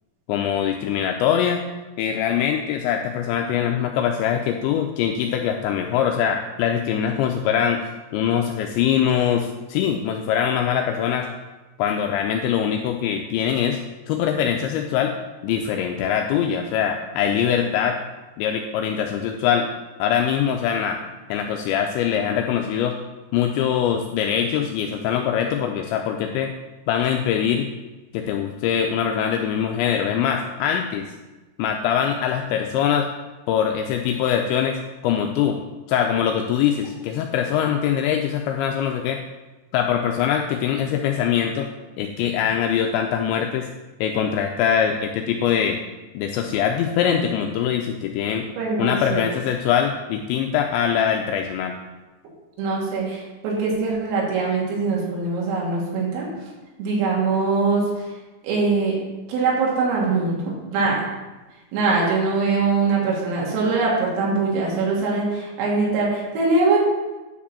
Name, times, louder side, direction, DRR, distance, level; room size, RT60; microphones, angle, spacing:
voice 1, 0.3-1.6 2.0-7.8 8.1-11.3 11.8-13.8 14.1-15.1 15.4-18.0 18.4-19.7 20.0-21.0 21.3-23.0 23.3-26.5 26.9-27.7 28.1-31.1 31.6-33.1 33.5-35.6 35.9-39.2 39.7-41.7 42.0-43.7 44.0-45.8 46.1-48.5 48.8-51.8, left 8 dB, 85° left, 3 dB, 2.6 m, -23 dB
voice 2, 48.6-49.3 52.6-56.3 56.8-58.1 58.4-59.0 59.3-61.0 61.7-66.8, right 3 dB, 85° right, -4 dB, 4.9 m, -22 dB
10.0 x 5.1 x 6.9 m, 1.1 s
omnidirectional pair, 5.8 m